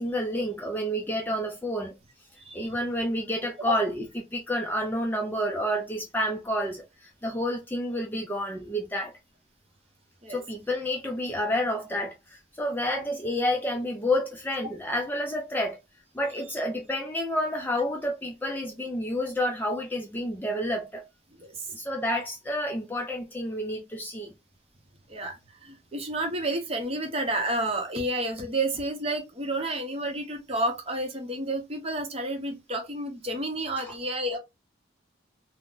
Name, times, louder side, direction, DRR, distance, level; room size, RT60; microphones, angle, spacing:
voice 1, 0.0-2.0 2.5-9.1 10.3-15.8 16.1-21.0 21.7-24.3, equal, 10° left, 0.3 m, -29 dB
voice 2, 2.4-2.7 3.7-3.8 10.2-10.4 21.4-21.7 25.1-34.4, right 1 dB, 30° right, 0.7 m, -30 dB
3.7 x 2.0 x 2.4 m
head